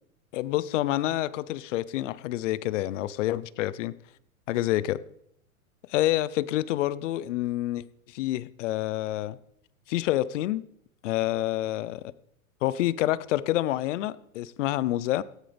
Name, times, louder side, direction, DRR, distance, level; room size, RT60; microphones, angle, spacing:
voice 1, 0.3-3.9 4.5-5.0 5.9-9.4 9.9-10.6 11.0-12.0 12.6-15.2, left 15 dB, 55° left, 0.7 m, -28 dB
17.5 x 13.5 x 3.5 m
hypercardioid pair, 125°, 43 cm